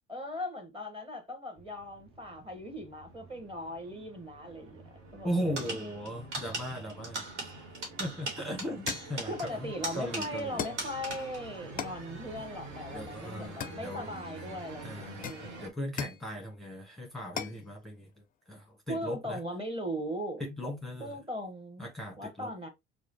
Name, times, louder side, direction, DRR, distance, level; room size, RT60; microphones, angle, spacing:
voice 1, 0.1-4.8 5.1-5.8 9.2-15.7 18.9-20.4 21.0-21.9 22.2-22.7, equal, 15° right, 1.3 m, -39 dB
sound 1, 1.6-15.7, right 2 dB, 55° right, 1.3 m, -48 dB
voice 2, 5.2-7.2 8.0-10.6 12.9-14.1 14.8-18.1 18.5-19.4 20.4-21.2 21.8-22.5, equal, ahead, 1.2 m, -38 dB
sound 2, 5.6-10.5 10.8-11.5, right 2 dB, 85° right, 1.3 m, -39 dB
sound 3, 8.2-8.3 8.9-9.2 10.6-10.9 11.8-12.1 13.6-14.2 15.2-16.3 17.4-17.6, left 8 dB, 25° left, 0.4 m, -38 dB
4.7 x 2.3 x 2.7 m
hypercardioid pair, 70°, 34 cm